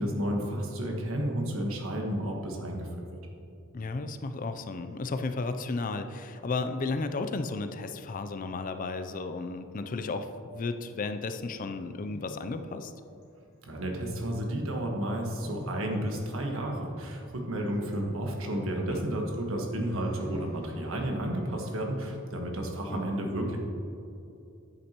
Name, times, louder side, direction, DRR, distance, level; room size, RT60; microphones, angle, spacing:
voice 1, 0.0-3.2 13.6-23.6, right 1 dB, 75° right, 1 dB, 1.3 m, -32 dB
voice 2, 3.7-12.9 18.9-19.1 22.9-23.1, left 3 dB, 40° left, 9 dB, 0.4 m, -34 dB
sound 1, 9.7-22.1, left 1 dB, 80° left, 1.6 m, -50 dB
9.8 x 8.1 x 3.0 m, 2.7 s
head